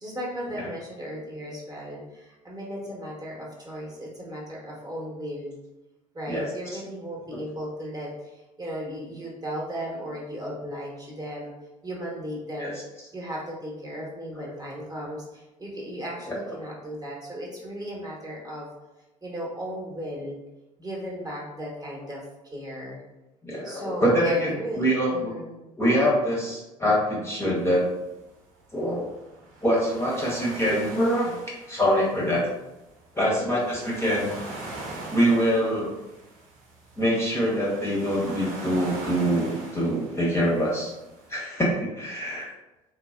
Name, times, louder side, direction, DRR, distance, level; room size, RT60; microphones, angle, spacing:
voice 1, 0.0-5.5 6.1-11.5 11.8-12.8 13.1-18.7 19.2-20.4 20.8-23.0 23.6-25.5 33.2-33.5 35.0-35.1 42.3-42.5, equal, 20° right, -4 dB, 0.9 m, -36 dB
voice 2, 23.4-25.3 25.8-27.8 28.7-29.1 29.6-31.4 31.7-32.4 33.1-34.3 35.1-35.9 37.0-40.9 41.3-42.5, equal, 15° left, -5 dB, 0.8 m, -24 dB
sound 1, 27.6-41.3, right 2 dB, 50° right, 0.8 m, -42 dB
3.0 x 2.0 x 2.3 m, 1.0 s
figure-of-eight pair, 60°, 19 cm